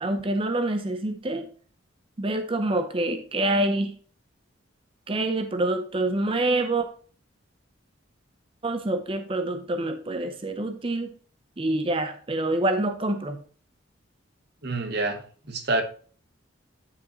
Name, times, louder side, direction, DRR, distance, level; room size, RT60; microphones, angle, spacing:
voice 1, 0.0-1.5 2.2-3.9 5.1-6.9 8.6-11.1 11.6-13.4, right 2 dB, 25° right, 8 dB, 0.6 m, -26 dB
voice 2, 14.6-15.2 15.5-15.8, right 2 dB, 55° right, 7 dB, 1.1 m, -26 dB
9.6 x 5.3 x 3.0 m, 0.43 s
head